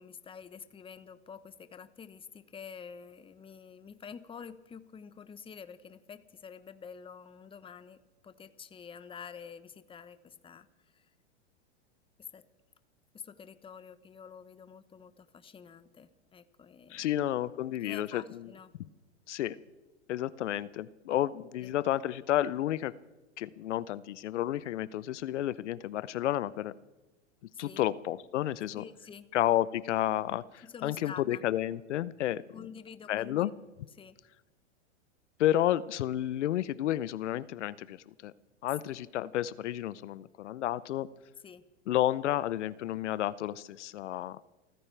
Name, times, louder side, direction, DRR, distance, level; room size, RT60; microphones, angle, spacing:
voice 1, 0.0-10.7 10.9-11.1 12.2-12.4 13.1-17.2 17.8-18.7 21.6-21.7 27.5-27.9 28.7-29.3 30.6-31.4 32.5-33.5 34.0-34.2 41.4-41.6, left 6 dB, 15° left, 12 dB, 0.9 m, -48 dB
voice 2, 16.9-18.4 19.3-19.6 20.1-22.9 23.4-26.7 27.6-28.8 29.3-32.4 33.1-33.5 35.4-38.3 38.6-41.1 41.9-44.4, left 13 dB, 80° left, 18 dB, 0.7 m, -31 dB
28.5 x 14.5 x 3.4 m, 1.1 s
hypercardioid pair, 115°, 35 cm